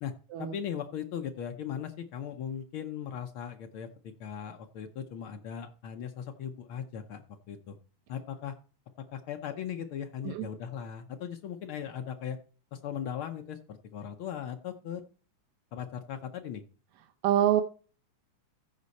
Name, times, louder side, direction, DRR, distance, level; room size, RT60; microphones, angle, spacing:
voice 1, 0.4-7.8 8.1-8.6 9.1-12.4 12.7-15.0 15.7-16.6, left 8 dB, 85° left, 5 dB, 1.1 m, -38 dB
voice 2, 17.2-17.6, right 11 dB, 80° right, 6 dB, 2.1 m, -25 dB
15.0 x 5.3 x 4.1 m, 0.38 s
omnidirectional pair, 3.4 m